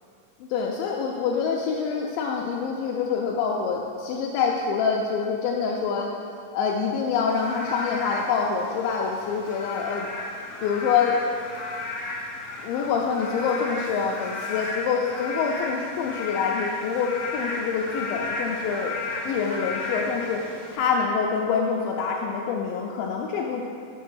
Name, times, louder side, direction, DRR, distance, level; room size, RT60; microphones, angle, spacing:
voice 1, 0.5-6.1 6.5-10.1 10.6-11.3 12.6-19.0 19.2-20.5 20.7-23.6, left 6 dB, 85° left, -1 dB, 2.3 m, -26 dB
Frog / Rain, 7.3-20.8, left 3 dB, 60° left, 2.0 m, -34 dB
6.6 x 5.5 x 6.2 m, 2.3 s
omnidirectional pair, 4.0 m